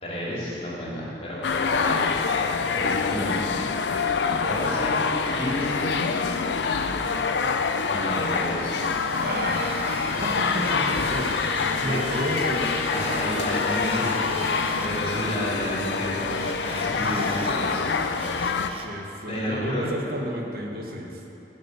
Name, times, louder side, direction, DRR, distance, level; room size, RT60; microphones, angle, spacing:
voice 1, 0.0-2.1 2.7-3.6 4.2-4.9 5.3-5.9 7.9-8.8 11.8-12.0 12.9-14.4 14.7-18.3 19.3-19.9, equal, 35° left, -6 dB, 2.6 m, -31 dB
sound 1, 1.4-18.7, left 5 dB, 80° left, 0.5 m, -26 dB
Drill, 8.6-14.9 16.3-17.5 17.9-19.0, right 3 dB, 30° right, 0.6 m, -40 dB
voice 2, 9.2-13.2 13.5-13.7 18.8-21.2, equal, 55° right, 1 dB, 1.3 m, -32 dB
12.5 x 5.4 x 7.9 m, 3.0 s
head